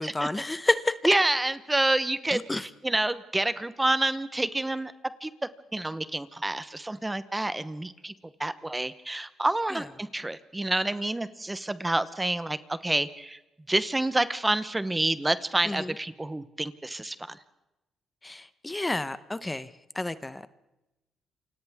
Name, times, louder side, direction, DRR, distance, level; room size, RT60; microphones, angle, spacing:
voice 1, 0.0-0.9 2.3-2.6 9.7-9.8 15.7-15.9 18.2-20.5, left 2 dB, 15° left, 0.9 m, -30 dB
voice 2, 1.0-4.9 5.2-5.3 5.7-8.1 8.4-13.4 13.7-17.4, right 2 dB, 15° right, 0.9 m, -28 dB
28.5 x 26.0 x 3.6 m
cardioid pair, 90°, 0 cm